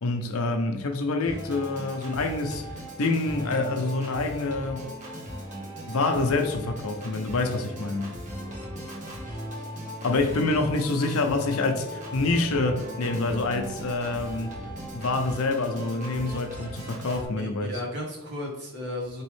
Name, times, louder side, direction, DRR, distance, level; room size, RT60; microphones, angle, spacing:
voice 1, 0.0-2.6 3.0-4.9 5.9-8.1 10.0-14.6 14.9-17.7, left 3 dB, 65° left, 0.6 m, -27 dB
Organ, 1.3-17.3, equal, 35° right, 1.0 m, -38 dB
voice 2, 17.4-19.2, left 1 dB, 50° right, 1.4 m, -35 dB
4.7 x 3.0 x 3.1 m
head